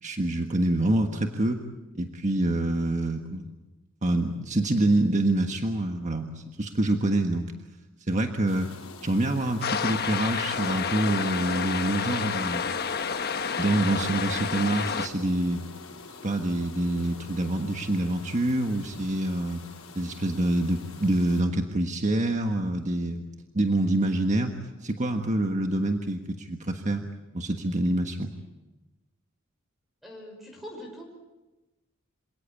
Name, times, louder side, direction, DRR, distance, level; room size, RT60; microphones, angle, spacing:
voice 1, 0.0-1.6 1.9-3.5 4.0-7.5 8.1-8.7 9.0-12.6 13.5-15.6 16.2-19.6 19.9-23.2 23.5-24.5 24.8-27.0 27.3-28.3, right 1 dB, 35° right, 4 dB, 1.5 m, -26 dB
sound 1, 8.5-21.4, left 4 dB, 90° left, 4.7 m, -46 dB
sound 2, 9.6-15.1, left 6 dB, 50° left, 1.2 m, -29 dB
voice 2, 30.0-31.0, equal, ahead, 1 dB, 5.9 m, -42 dB
27.0 x 18.0 x 8.4 m, 1.1 s
head